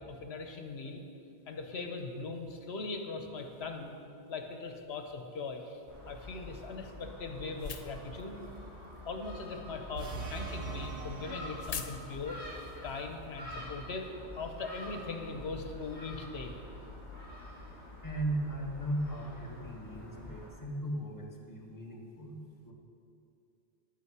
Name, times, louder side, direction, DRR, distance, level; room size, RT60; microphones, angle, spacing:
voice 1, 0.1-1.0 1.5-3.9 4.3-5.8 6.1-8.4 9.0-12.5 12.8-14.1 14.3-16.5, left 3 dB, 70° left, 5 dB, 1.2 m, -40 dB
sound 1, 3.4-16.0, left 6 dB, 45° left, 0.5 m, -51 dB
Gull seagull, 5.9-20.5, left 1 dB, 25° right, 3.1 m, -47 dB
sound 2, 9.9-12.2, right 4 dB, 85° right, 1.2 m, -42 dB
voice 2, 17.4-17.7 18.0-22.7, right 1 dB, 20° left, -2 dB, 1.3 m, -37 dB
11.0 x 8.6 x 4.8 m, 2.5 s
omnidirectional pair, 1.1 m